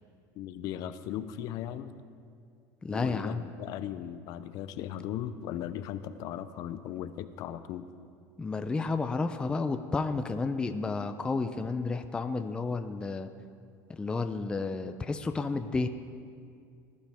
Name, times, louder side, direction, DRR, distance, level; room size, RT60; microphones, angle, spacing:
voice 1, 0.4-1.9 2.9-7.9, left 10 dB, 55° left, 12 dB, 0.6 m, -37 dB
voice 2, 2.8-3.5 8.4-13.3 13.9-15.9, left 3 dB, 10° left, 8 dB, 0.4 m, -31 dB
19.5 x 11.5 x 3.5 m, 2.3 s
cardioid pair, 145°, 8 cm